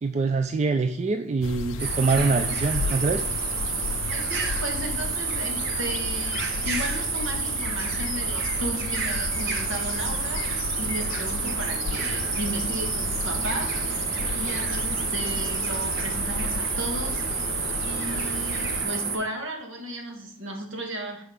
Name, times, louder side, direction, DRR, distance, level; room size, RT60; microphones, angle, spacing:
voice 1, 0.0-3.2, right 4 dB, 35° right, 7 dB, 0.3 m, -24 dB
sound 1, 1.4-18.8, left 6 dB, 70° left, 0.3 m, -34 dB
sound 2, 1.8-19.2, right 5 dB, 50° right, 1.2 m, -29 dB
voice 2, 4.1-14.0 14.3-17.4 17.8-21.2, right 1 dB, 70° right, 1 dB, 1.7 m, -35 dB
6.6 x 4.5 x 4.9 m, 0.70 s
head